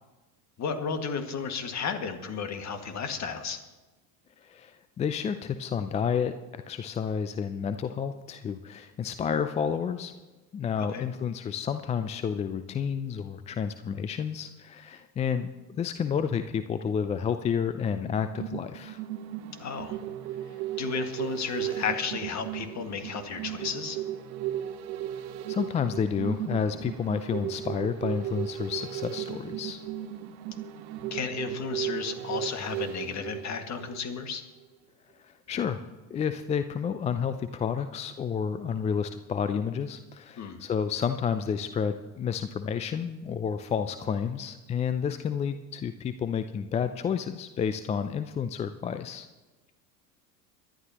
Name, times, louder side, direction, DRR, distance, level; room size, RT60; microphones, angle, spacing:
voice 1, 0.6-3.6 10.9-11.0 19.6-20.0 20.8-24.0 31.1-34.4 40.4-40.6, left 6 dB, 35° left, 6 dB, 1.9 m, -33 dB
voice 2, 4.4-10.1 10.5-19.0 25.5-29.8 35.2-35.8 36.1-49.3, left 7 dB, 15° left, 10 dB, 0.4 m, -30 dB
sound 1, 18.0-34.3 34.6-34.7, right 11 dB, 50° right, 1.3 m, -36 dB
23.5 x 11.5 x 2.9 m, 1.2 s
hypercardioid pair, 85°, 48 cm